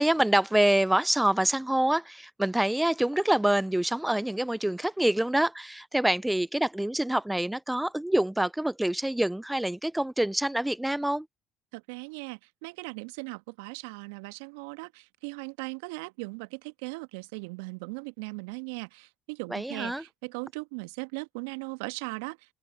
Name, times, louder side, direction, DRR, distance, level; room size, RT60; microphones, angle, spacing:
voice 1, 0.0-11.3 19.5-20.0, right 1 dB, 5° right, 0.6 m, -26 dB
voice 2, 11.7-22.4, right 30 dB, 70° right, 1.5 m, -38 dB
open air
figure-of-eight pair, 55°, 0 cm